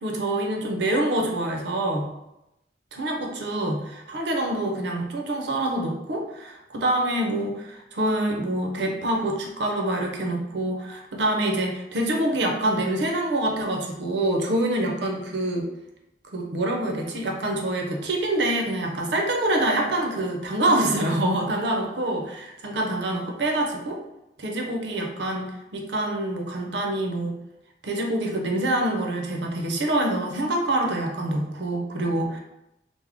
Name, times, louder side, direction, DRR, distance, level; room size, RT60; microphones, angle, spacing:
voice 1, 0.0-2.1 2.9-15.7 16.3-24.0 24.4-27.3 27.8-32.4, right 1 dB, 70° right, 2 dB, 0.6 m, -26 dB
3.4 x 2.1 x 3.5 m, 0.89 s
head